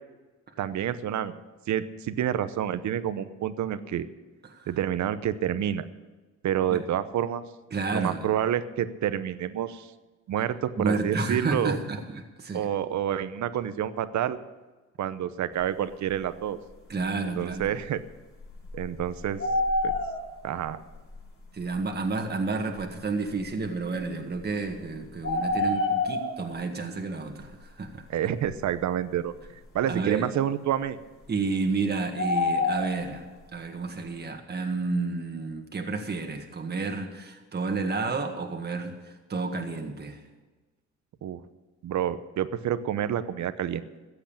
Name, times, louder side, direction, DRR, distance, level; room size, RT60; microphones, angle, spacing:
voice 1, 0.6-1.3 1.7-4.0 4.7-5.8 6.4-7.4 7.9-9.9 10.3-11.8 12.5-14.4 15.0-16.6 17.4-18.0 18.7-19.4 19.8-19.9 20.4-20.8 28.1-29.3 29.7-31.0 41.2-41.4 41.8-43.9, right 10 dB, 70° right, 13 dB, 0.9 m, -28 dB
voice 2, 7.7-8.2 10.8-12.7 16.9-17.7 21.5-28.0 29.9-30.3 31.3-40.2, right 4 dB, 35° right, 3 dB, 1.7 m, -31 dB
sound 1, 17.6-17.7 18.4-20.4 21.1-21.2 22.8-22.9 25.2-26.4 32.2-33.0, left 2 dB, 45° left, 4.4 m, -26 dB
14.5 x 8.2 x 8.8 m, 1.2 s
cardioid pair, 90°, 30 cm